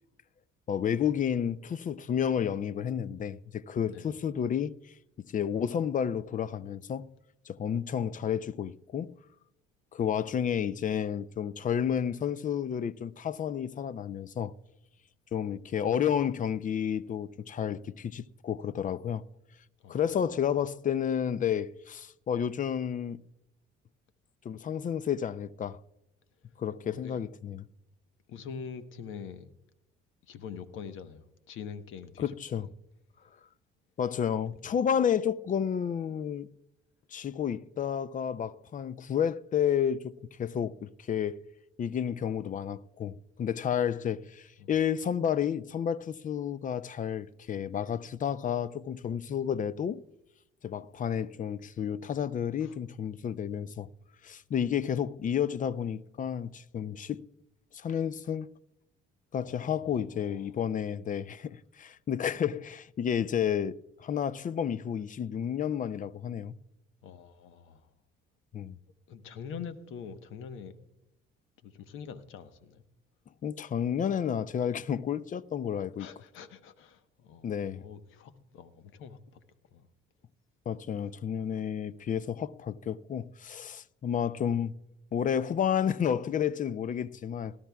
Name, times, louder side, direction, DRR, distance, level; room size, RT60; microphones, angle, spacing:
voice 1, 0.7-4.8 5.3-7.1 7.5-9.1 9.9-14.5 15.3-19.2 19.9-23.2 24.4-25.8 26.6-27.6 32.2-32.7 34.0-36.5 37.1-41.4 41.8-50.0 50.6-53.9 54.2-57.3 57.7-58.5 59.3-66.6 68.5-68.8 73.4-76.1 77.4-77.8 80.7-84.8 85.1-87.6, left 8 dB, 40° left, 0.5 m, -31 dB
voice 2, 3.9-4.2 19.8-20.2 26.9-27.2 28.3-29.5 30.3-32.7 44.6-44.7 52.6-52.8 59.4-60.5 67.0-67.9 69.1-70.8 71.6-72.8 76.0-79.4 79.7-79.9 82.0-82.1 87.3-87.4, left 6 dB, 70° left, 1.1 m, -45 dB
18.0 x 12.5 x 2.3 m
supercardioid pair, 75°, 21 cm